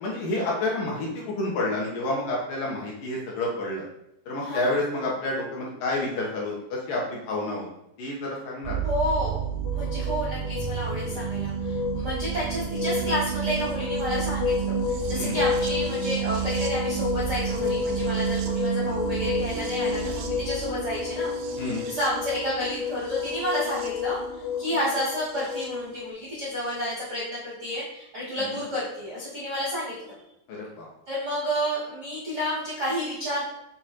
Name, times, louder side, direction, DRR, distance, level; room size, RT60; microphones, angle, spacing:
voice 1, 0.0-3.8 4.3-7.7 8.0-8.8 15.1-15.4 21.6-21.9 28.4-28.6 30.5-30.9, left 2 dB, 65° left, -3 dB, 2.4 m, -29 dB
voice 2, 4.4-4.8 8.8-9.4 9.7-30.1 31.1-33.4, equal, 65° right, -7 dB, 0.9 m, -31 dB
sound 1, 8.6-25.7 26.9-27.0, right 8 dB, 90° right, 1.8 m, -31 dB
sound 2, 9.6-26.1, left 7 dB, 85° left, 1.9 m, -31 dB
7.5 x 3.8 x 4.2 m, 0.82 s
omnidirectional pair, 4.7 m